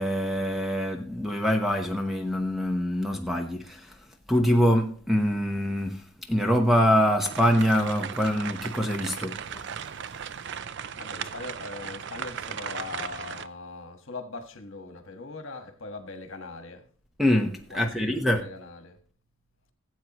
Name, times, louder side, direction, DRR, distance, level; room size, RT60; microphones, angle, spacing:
voice 1, 0.0-4.0 4.3-9.6 17.2-18.4, equal, ahead, 0.9 m, -24 dB
sound 1, 7.2-13.5, right 7 dB, 55° right, 0.4 m, -37 dB
voice 2, 10.9-16.8 17.7-19.0, left 3 dB, 60° left, 1.4 m, -40 dB
16.5 x 8.0 x 3.0 m
head